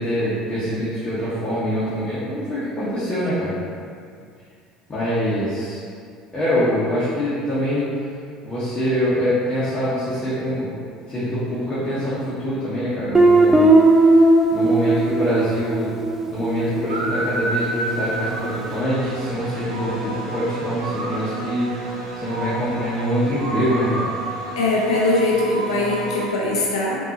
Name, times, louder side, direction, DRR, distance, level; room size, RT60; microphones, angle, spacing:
voice 1, 0.0-3.5 4.9-5.8 6.3-7.9 8.4-10.8 11.1-13.7 14.1-14.2 14.5-15.9 16.3-21.7 22.1-24.1, equal, 30° left, -12 dB, 1.1 m, -24 dB
Guitar, 13.1-17.8, right 2 dB, 15° right, 0.3 m, -17 dB
sound 1, 16.9-26.3, right 1 dB, 80° right, 0.6 m, -29 dB
voice 2, 24.5-27.0, left 2 dB, 80° left, -4 dB, 0.7 m, -21 dB
3.8 x 2.6 x 2.8 m, 2.2 s
hypercardioid pair, 70°, 3 cm